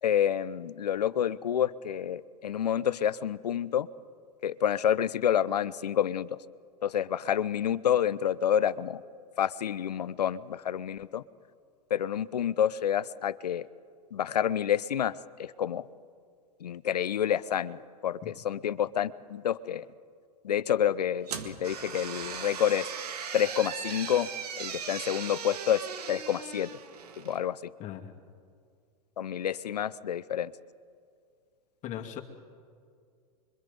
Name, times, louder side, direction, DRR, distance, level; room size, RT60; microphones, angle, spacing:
voice 1, 0.0-3.9 4.4-6.4 6.8-9.0 9.4-11.2 11.9-13.7 14.1-15.9 16.6-19.9 20.4-22.9 23.3-24.3 24.6-26.7 27.2-27.7 29.2-30.5, left 9 dB, 85° left, 17 dB, 0.7 m, -28 dB
sound 1, 21.3-27.4, right 7 dB, 75° right, 2.0 m, -38 dB
voice 2, 27.8-28.1 31.8-32.2, left 11 dB, 40° left, 2 dB, 2.5 m, -38 dB
26.0 x 23.5 x 5.4 m, 2.2 s
hypercardioid pair, 105°, 20 cm